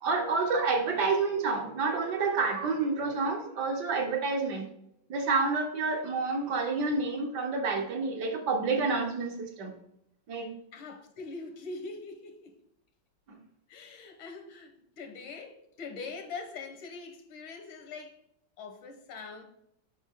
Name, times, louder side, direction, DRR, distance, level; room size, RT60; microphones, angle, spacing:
voice 1, 0.0-4.7 5.1-9.7 10.3-10.5 13.3-13.4, right 4 dB, 60° right, 1.5 m, -29 dB
voice 2, 10.7-12.5 13.7-18.2 18.6-19.4, left 4 dB, 85° left, 2.0 m, -43 dB
7.3 x 5.5 x 3.6 m
omnidirectional pair, 2.2 m